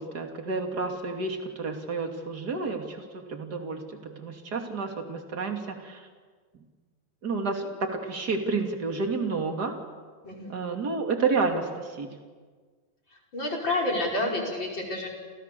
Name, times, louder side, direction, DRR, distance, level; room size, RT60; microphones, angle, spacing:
voice 1, 0.0-6.1 6.5-6.6 7.2-9.7 10.5-12.1, right 4 dB, 30° right, 3 dB, 2.9 m, -30 dB
voice 2, 10.2-10.6 13.3-15.1, left 2 dB, 30° left, -1 dB, 5.8 m, -29 dB
30.0 x 28.0 x 7.0 m, 1.5 s
omnidirectional pair, 4.2 m